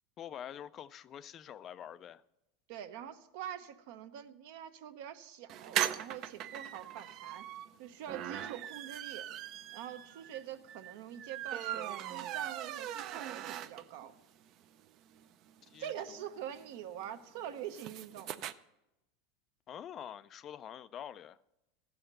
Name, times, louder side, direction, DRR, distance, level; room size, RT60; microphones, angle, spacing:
voice 1, 0.2-2.2 15.6-16.2 19.7-21.4, left 9 dB, 30° left, 0.3 m, -46 dB
voice 2, 2.7-7.5 7.8-9.3 9.7-14.1 15.8-18.4, right 10 dB, 65° right, 0.8 m, -45 dB
sound 1, 5.5-14.1 14.5-14.6 14.8-14.9 15.1-18.5, right 11 dB, 40° right, 0.4 m, -40 dB
15.0 x 5.7 x 6.6 m
supercardioid pair, 150°, 0 cm